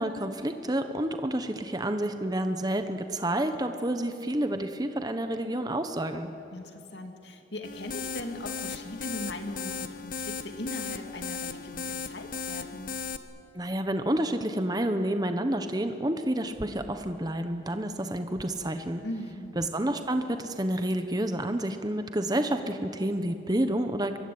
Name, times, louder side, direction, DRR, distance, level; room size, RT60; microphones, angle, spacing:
voice 1, 0.0-6.3 13.5-19.0 19.6-24.2, right 1 dB, 20° right, 7 dB, 1.1 m, -29 dB
voice 2, 6.5-12.9 19.0-19.5, left 1 dB, 65° left, 5 dB, 2.6 m, -39 dB
sound 1, 7.6-13.2, left 5 dB, 45° left, 1.1 m, -36 dB
24.0 x 24.0 x 8.7 m, 2.7 s
head